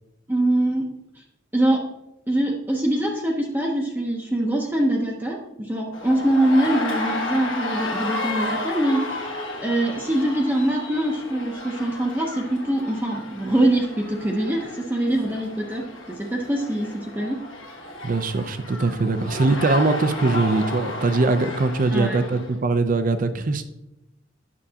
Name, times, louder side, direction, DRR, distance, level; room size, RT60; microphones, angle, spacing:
voice 1, 0.3-0.9 1.5-1.8 2.3-9.2 9.6-15.8 16.2-17.4 21.9-22.2, right 1 dB, 10° right, -1 dB, 0.7 m, -23 dB
sound 1, 5.9-22.5, left 1 dB, 75° left, 1.5 m, -33 dB
voice 2, 18.0-23.6, right 3 dB, 45° right, 11 dB, 0.5 m, -22 dB
9.7 x 6.5 x 2.8 m, 0.90 s
head